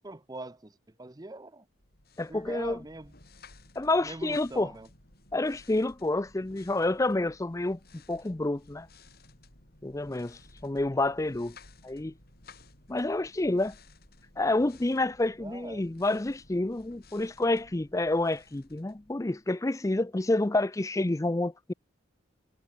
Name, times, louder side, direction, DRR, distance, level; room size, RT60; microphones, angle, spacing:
voice 1, 0.0-1.7 2.3-3.1 4.0-4.9 15.4-15.8, right 2 dB, 20° right, 0.7 m, -43 dB
sound 1, 1.7-19.6, left 2 dB, 50° left, 7.9 m, -56 dB
voice 2, 2.2-2.8 3.8-4.7 5.3-7.8 8.1-8.9 9.8-11.6 11.8-12.1 12.9-13.8 14.4-21.7, left 2 dB, 15° left, 0.5 m, -28 dB
head